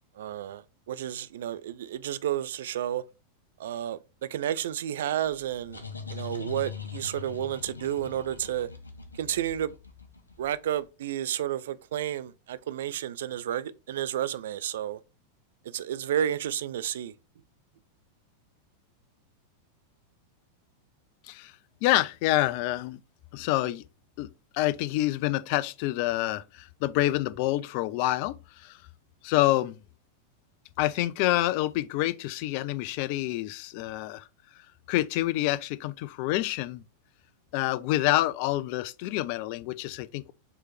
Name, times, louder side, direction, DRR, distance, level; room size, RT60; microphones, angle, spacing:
voice 1, 0.2-3.0 3.6-5.8 6.1-8.7 9.2-9.7 10.4-15.0 15.7-17.1, right 11 dB, 60° right, 0.3 m, -31 dB
sound 1, 5.2-10.7, left 4 dB, 80° left, 0.6 m, -42 dB
voice 2, 21.8-23.0 23.3-23.8 24.2-24.3 24.5-28.8 29.2-29.8 30.8-34.2 34.9-36.8 37.5-40.3, left 16 dB, 45° left, 0.3 m, -27 dB
4.5 x 3.1 x 3.3 m
figure-of-eight pair, 90°, 0 cm